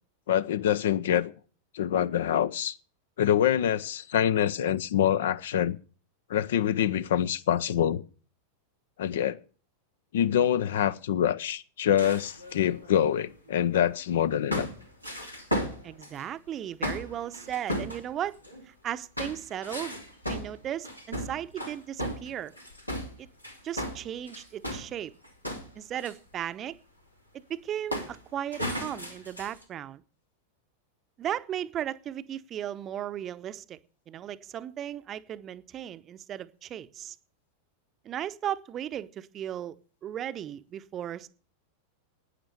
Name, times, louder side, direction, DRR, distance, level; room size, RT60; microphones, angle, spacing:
voice 1, 0.3-1.3 1.7-2.8 3.2-5.8 6.3-8.0 9.0-9.4 10.1-14.7, left 10 dB, 60° left, 0.6 m, -25 dB
sound 1, 12.0-13.9 14.5-16.2 16.8-18.6 19.2-24.9 25.2-26.1 27.9-28.2 28.5-29.6, equal, 90° left, 2.7 m, -35 dB
voice 2, 15.8-18.4 18.7-20.0 20.3-22.5 23.2-23.3 23.6-25.1 25.8-26.8 27.3-30.0 31.2-33.8 34.1-37.2 38.0-39.8 40.0-41.3, right 10 dB, 30° right, 0.8 m, -36 dB
12.0 x 9.5 x 6.7 m
figure-of-eight pair, 90°, 0 cm